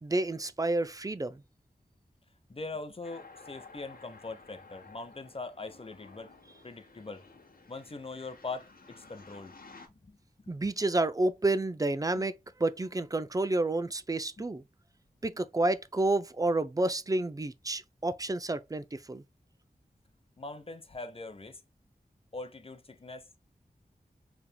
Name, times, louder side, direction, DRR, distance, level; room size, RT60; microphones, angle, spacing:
voice 1, 0.0-1.4 10.5-14.6 15.2-19.2, right 2 dB, 20° right, 0.4 m, -30 dB
voice 2, 2.5-6.3 6.6-7.2 7.7-9.5 10.1-10.2 10.4-10.7 12.1-12.2 20.4-21.6 22.3-23.3, left 3 dB, 35° left, 0.8 m, -42 dB
sound 1, 3.0-9.9, left 3 dB, 70° left, 0.9 m, -53 dB
4.8 x 3.4 x 2.2 m
wide cardioid pair, 75°, 16 cm